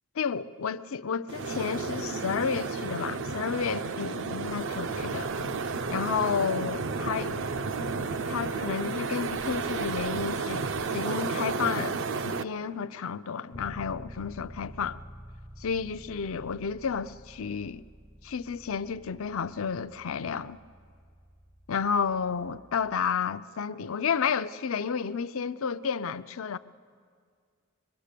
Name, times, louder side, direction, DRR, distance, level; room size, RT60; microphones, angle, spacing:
voice 1, 0.2-5.3 5.9-7.4 8.3-15.0 15.6-17.8 18.2-20.6 21.7-26.6, left 6 dB, 65° left, 0.5 m, -31 dB
sound 1, 1.3-12.4, right 4 dB, 55° right, 0.6 m, -32 dB
sound 2, 4.4-10.9, right 2 dB, 85° right, 1.1 m, -47 dB
Bass guitar, 13.5-23.3, equal, ahead, 0.5 m, -49 dB
26.0 x 23.0 x 6.8 m
head